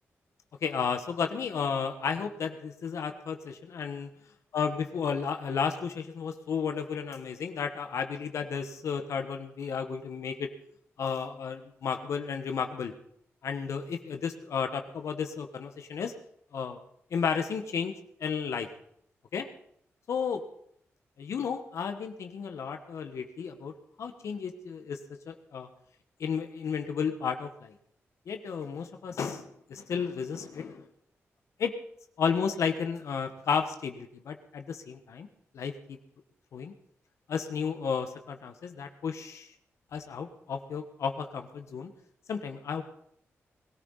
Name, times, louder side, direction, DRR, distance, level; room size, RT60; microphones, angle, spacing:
voice 1, 0.6-4.1 4.5-10.5 11.0-12.9 13.4-16.1 16.5-16.8 17.1-17.9 18.2-18.7 19.3-19.5 20.1-20.4 21.2-23.7 24.0-25.0 25.3-25.7 26.2-27.7 28.3-30.9 31.6-31.7 32.2-35.3 35.5-36.0 36.5-36.7 37.3-39.5 39.9-41.9 42.3-42.8, left 6 dB, 80° left, 6 dB, 1.3 m, -33 dB
20.5 x 13.5 x 4.1 m, 0.69 s
cardioid pair, 85°, 5 cm